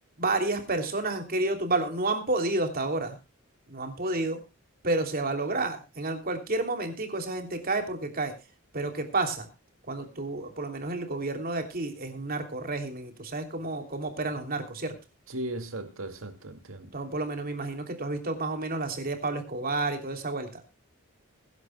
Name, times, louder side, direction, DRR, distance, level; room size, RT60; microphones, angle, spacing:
voice 1, 0.2-3.2 3.7-4.4 4.8-8.3 8.7-9.5 9.9-14.9 16.9-20.6, right 2 dB, 45° right, 3.1 m, -30 dB
voice 2, 15.3-16.9, right 1 dB, 70° right, 2.5 m, -37 dB
23.0 x 11.0 x 2.3 m
head